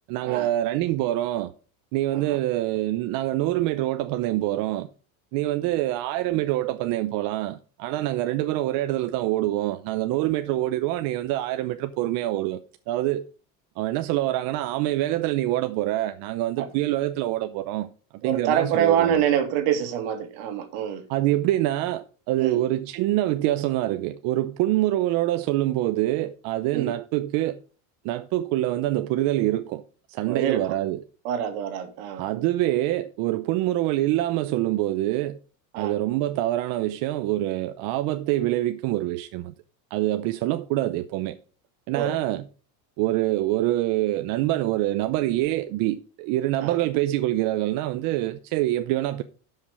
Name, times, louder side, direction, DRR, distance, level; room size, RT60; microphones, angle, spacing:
voice 1, 0.1-1.5 1.9-4.9 5.3-12.6 12.9-13.3 13.8-17.9 18.2-19.2 21.1-27.6 28.0-29.8 30.1-31.0 32.2-35.4 35.8-39.5 39.9-41.4 41.9-42.5 43.0-49.2, right 15 dB, 55° right, 0.7 m, -25 dB
voice 2, 18.2-21.0 22.4-22.6 26.7-26.9 30.3-30.6 31.2-32.2 35.7-36.0 41.9-42.1 46.6-46.7, right 9 dB, 75° right, 2.1 m, -26 dB
12.5 x 5.6 x 4.9 m
cardioid pair, 160°, 42 cm